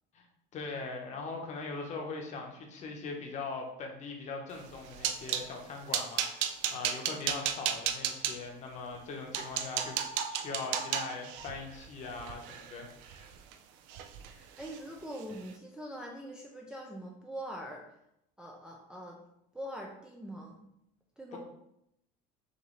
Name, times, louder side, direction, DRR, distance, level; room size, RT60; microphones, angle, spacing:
voice 1, 0.5-13.3 21.3-21.4, left 4 dB, 35° left, 2 dB, 0.9 m, -41 dB
sound 1, 4.6-5.5 5.9-8.3 8.9-9.0 9.3-13.5 13.9-14.3 14.6-14.8 15.2-15.3, right 9 dB, 70° right, 0.5 m, -34 dB
voice 2, 14.3-17.8 18.4-19.2 19.5-20.6 21.2-21.4, equal, 5° right, -2 dB, 0.4 m, -43 dB
6.3 x 2.6 x 3.2 m, 0.80 s
cardioid pair, 160°, 20 cm